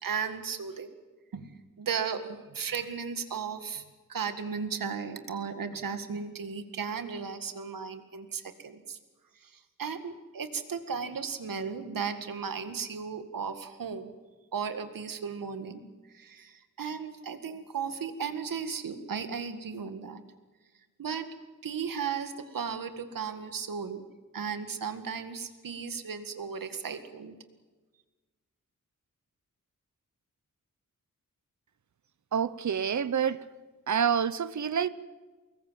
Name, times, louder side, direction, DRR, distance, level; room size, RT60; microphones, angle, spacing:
voice 1, 0.0-0.9 1.3-3.8 4.1-9.0 9.4-14.1 14.5-15.9 16.1-20.2 21.0-21.3 21.6-24.0 24.3-27.4, right 6 dB, 85° right, 2.0 m, -35 dB
voice 2, 32.3-33.4 33.9-34.9, right 7 dB, 60° right, 0.9 m, -27 dB
25.0 x 21.0 x 7.6 m
wide cardioid pair, 150°, 33 cm